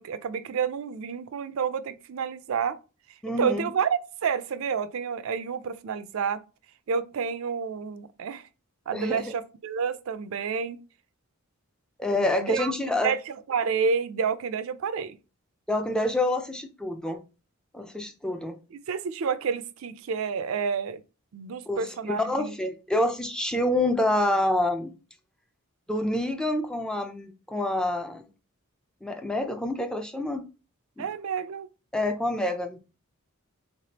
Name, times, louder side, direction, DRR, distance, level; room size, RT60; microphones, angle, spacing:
voice 1, 0.0-2.8 3.4-6.4 6.9-8.5 8.9-10.8 12.1-12.7 13.0-15.2 18.9-21.0 21.3-22.6 31.0-31.7, right 6 dB, 70° right, 0.4 m, -29 dB
voice 2, 3.2-3.7 8.9-9.3 12.0-13.1 15.7-17.2 17.7-18.6 21.7-24.9 25.9-28.3 29.0-30.4 31.0-31.1 31.9-32.8, left 1 dB, 5° left, 0.3 m, -27 dB
4.2 x 3.3 x 2.8 m
head